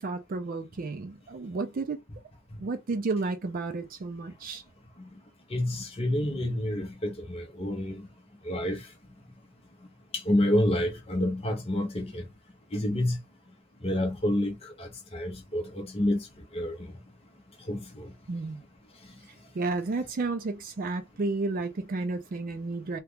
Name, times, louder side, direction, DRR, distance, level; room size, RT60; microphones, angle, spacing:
voice 1, 0.0-2.0 2.6-4.6 18.3-18.6 19.5-23.0, right 3 dB, 40° right, 0.4 m, -32 dB
voice 2, 5.5-8.0 8.4-8.9 10.1-12.2 12.7-13.2 13.8-16.2 16.5-16.8 17.7-18.1, left 1 dB, 30° left, 0.7 m, -28 dB
2.9 x 2.3 x 3.4 m
head